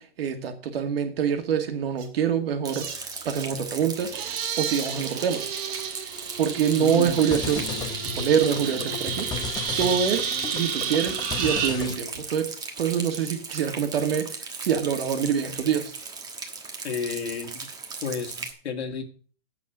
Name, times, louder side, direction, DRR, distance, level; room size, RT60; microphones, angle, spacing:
voice 1, 0.0-2.9 3.3-5.4 6.4-7.7 8.0-9.3 9.8-14.3 14.6-15.9, right 8 dB, 70° right, 7 dB, 2.2 m, -25 dB
sound 1, 2.0-2.1 2.7-3.5 4.0-11.7, right 7 dB, 40° right, 2.2 m, -31 dB
Rain, 2.6-18.5, right 4 dB, 10° right, 1.3 m, -38 dB
voice 2, 6.8-7.2 16.8-17.7 18.0-19.0, left 6 dB, 90° left, 5 dB, 2.2 m, -31 dB
sound 2, 6.9-11.9, left 6 dB, 15° left, 0.9 m, -35 dB
8.2 x 6.5 x 8.0 m, 0.43 s
hypercardioid pair, 150°, 31 cm